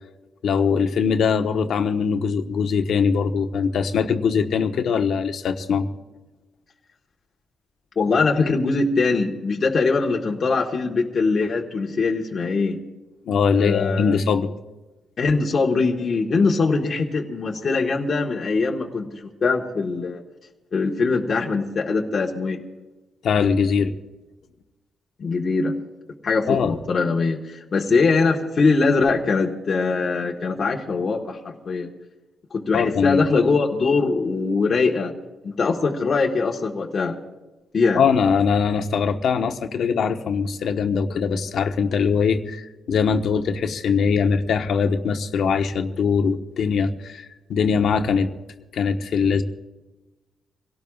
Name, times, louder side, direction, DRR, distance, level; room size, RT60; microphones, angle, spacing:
voice 1, 0.4-5.9 13.3-14.5 23.2-23.9 26.5-26.7 32.7-33.2 37.9-47.2 47.5-48.3 48.7-49.4, left 6 dB, 65° left, 6 dB, 1.2 m, -21 dB
voice 2, 7.9-12.8 13.5-14.1 15.2-20.2 20.7-22.6 25.2-25.7 26.2-31.9 32.5-35.1 35.4-37.2 37.7-38.0, left 4 dB, 40° left, -1 dB, 1.5 m, -22 dB
26.0 x 17.5 x 2.4 m, 1.1 s
cardioid pair, 130°, 0 cm